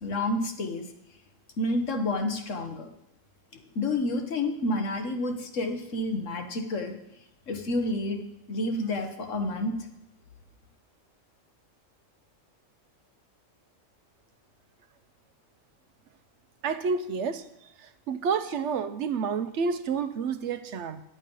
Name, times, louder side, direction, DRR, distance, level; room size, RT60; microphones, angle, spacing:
voice 1, 0.0-0.9 1.6-2.9 3.7-6.9 7.5-8.2 8.5-9.8, left 2 dB, 70° left, 5 dB, 1.5 m, -29 dB
voice 2, 16.6-17.4 18.1-21.0, right 5 dB, 70° right, 11 dB, 0.9 m, -29 dB
10.5 x 8.3 x 5.4 m, 0.83 s
omnidirectional pair, 1.3 m